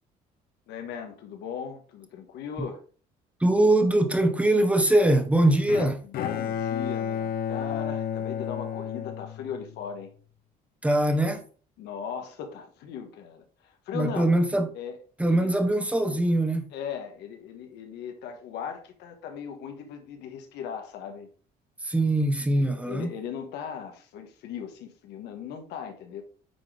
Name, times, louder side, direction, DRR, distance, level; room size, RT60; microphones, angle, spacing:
voice 1, 0.7-2.8 6.0-10.1 11.8-14.4 14.7-14.9 15.2-15.5 16.7-21.3 22.5-26.2, left 7 dB, 80° left, 1.5 m, -38 dB
voice 2, 3.4-6.0 10.8-11.4 13.9-14.7 15.2-16.7 21.8-23.1, right 1 dB, 10° right, 1.2 m, -22 dB
Bowed string instrument, 5.7-9.9, left 8 dB, 65° left, 0.6 m, -32 dB
9.5 x 3.8 x 3.4 m
cardioid pair, 110°, 17 cm